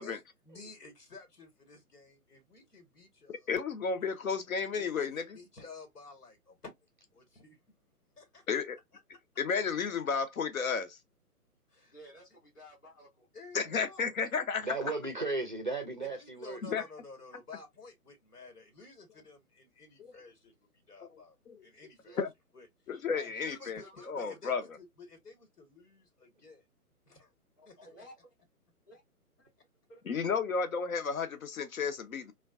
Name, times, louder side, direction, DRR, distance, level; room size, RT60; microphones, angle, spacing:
voice 1, 0.0-3.5 4.8-6.7 7.1-7.6 8.2-8.4 11.7-11.9 13.3-14.1 16.0-21.4 21.6-22.2 22.5-22.7 23.1-26.7 27.1-27.3 27.6-27.8, left 3 dB, 80° left, 1.3 m, -52 dB
voice 2, 3.3-5.2 8.5-8.8 9.4-11.0 13.5-14.7 16.6-16.8 20.0-20.1 21.5-21.7 22.2-22.3 22.9-23.8 24.1-24.6 30.1-32.3, left 5 dB, 60° left, 0.7 m, -32 dB
voice 3, 11.9-13.3 22.0-22.2 22.9-24.1 27.6-28.3 28.9-29.0 29.4-29.5 29.9-30.1, left 1 dB, 15° left, 0.5 m, -54 dB
voice 4, 14.6-16.6, right 3 dB, 35° right, 0.4 m, -35 dB
2.5 x 2.2 x 2.3 m
figure-of-eight pair, 140°, 46 cm